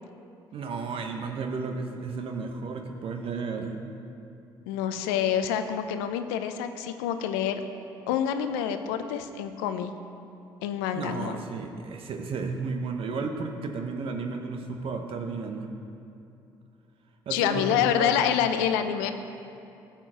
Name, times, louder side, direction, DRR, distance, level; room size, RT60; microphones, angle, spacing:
voice 1, 0.5-3.8 10.9-15.7 17.3-18.1, right 4 dB, 60° right, 4 dB, 0.9 m, -33 dB
voice 2, 4.7-7.6 8.1-9.9 10.6-11.4 17.3-19.1, left 9 dB, 85° left, 9 dB, 0.6 m, -27 dB
13.0 x 4.5 x 7.7 m, 2.7 s
hypercardioid pair, 55°, 11 cm